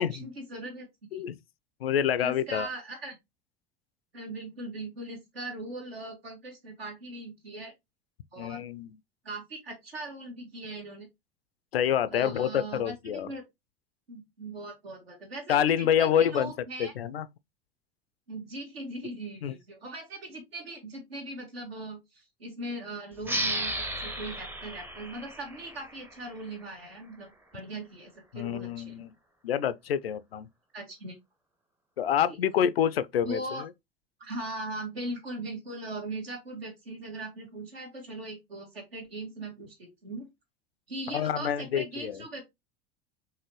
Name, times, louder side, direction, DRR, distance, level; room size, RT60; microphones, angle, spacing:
voice 1, 0.0-1.2 2.2-3.2 4.1-7.7 8.3-8.6 9.2-11.1 12.1-13.4 14.1-16.9 18.3-29.0 30.7-31.2 32.3-32.4 33.2-33.6 34.2-40.3 40.9-42.5, right 2 dB, 75° right, 1.7 m, -40 dB
voice 2, 1.8-2.7 8.4-8.9 11.7-13.3 15.5-16.5 16.8-17.3 19.4-19.5 28.3-29.1 29.4-30.5 32.0-33.4 41.1-42.2, left 9 dB, 75° left, 0.4 m, -27 dB
sound 1, 23.2-26.5, right 1 dB, 5° right, 0.6 m, -34 dB
4.7 x 3.0 x 3.1 m
figure-of-eight pair, 75°, 31 cm